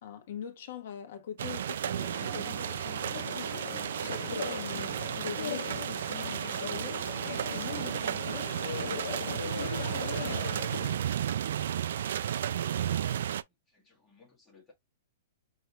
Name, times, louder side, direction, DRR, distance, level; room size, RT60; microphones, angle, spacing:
voice 1, 0.0-7.0 7.5-8.6 8.8-10.4, left 9 dB, 55° left, 1.1 m, -43 dB
sound 1, 1.4-13.4, right 10 dB, 70° right, 0.3 m, -33 dB
sound 2, 1.9-11.1, left 7 dB, 85° left, 0.9 m, -40 dB
sound 3, 2.2-11.1 11.5-11.7, right 14 dB, 40° right, 0.7 m, -56 dB
voice 2, 13.5-14.7, left 4 dB, 10° left, 1.5 m, -61 dB
5.9 x 2.9 x 2.2 m
hypercardioid pair, 165°, 0 cm